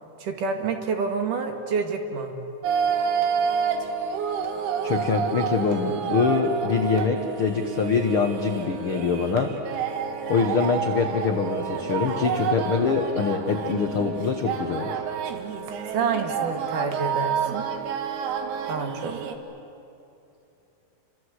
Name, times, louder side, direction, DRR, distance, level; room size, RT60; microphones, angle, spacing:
voice 1, 0.2-2.3 15.9-17.6 18.7-19.2, right 5 dB, 60° right, 4 dB, 3.2 m, -28 dB
sound 1, 2.6-19.3, right 7 dB, 80° right, 3.5 m, -29 dB
voice 2, 4.8-9.5 10.3-15.0, left 5 dB, 70° left, 4 dB, 1.2 m, -24 dB
29.5 x 24.5 x 8.1 m, 2.8 s
omnidirectional pair, 4.5 m